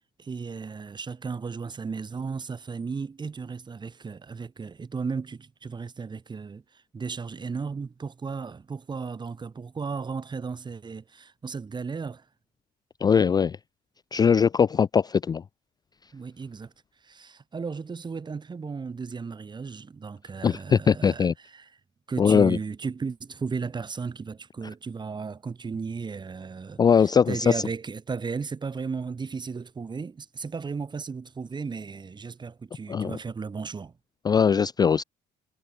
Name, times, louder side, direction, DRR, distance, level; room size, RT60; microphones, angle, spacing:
voice 1, 0.2-6.6 6.9-12.2 16.1-16.7 17.0-21.7 22.1-33.9, right 5 dB, 25° right, 1.9 m, -35 dB
voice 2, 13.0-13.6 14.1-15.4 20.4-21.3 22.2-22.6 26.8-27.5 32.9-33.2 34.2-35.0, left 6 dB, 25° left, 0.3 m, -21 dB
cardioid pair, 110°, 17 cm